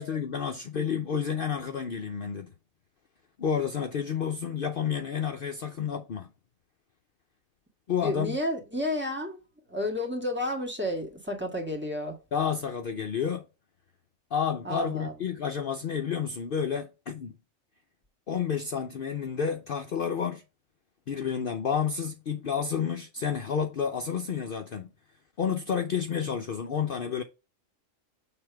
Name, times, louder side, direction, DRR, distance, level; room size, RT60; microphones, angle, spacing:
voice 1, 0.0-2.5 3.4-6.3 7.9-8.4 12.3-13.4 14.3-17.3 18.3-20.4 21.1-24.9 25.4-27.2, left 7 dB, 55° left, 0.7 m, -30 dB
voice 2, 8.0-9.4 9.7-12.2 14.6-15.1, left 1 dB, 10° right, 1.5 m, -31 dB
6.9 x 3.4 x 4.5 m
omnidirectional pair, 1.4 m